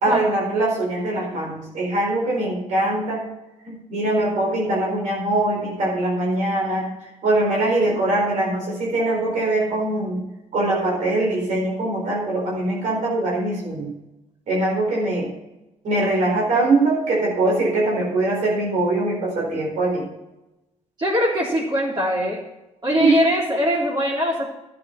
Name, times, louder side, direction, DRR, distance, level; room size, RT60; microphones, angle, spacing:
voice 1, 0.0-3.2 3.6-6.9 7.2-10.2 10.5-13.9 14.5-15.3 15.8-20.1 23.0-23.2, right 2 dB, 75° right, -3 dB, 4.7 m, -22 dB
voice 2, 21.0-22.4 22.8-24.5, equal, 35° right, -5 dB, 3.6 m, -21 dB
12.0 x 9.7 x 5.9 m, 0.96 s
cardioid pair, 90°, 13 cm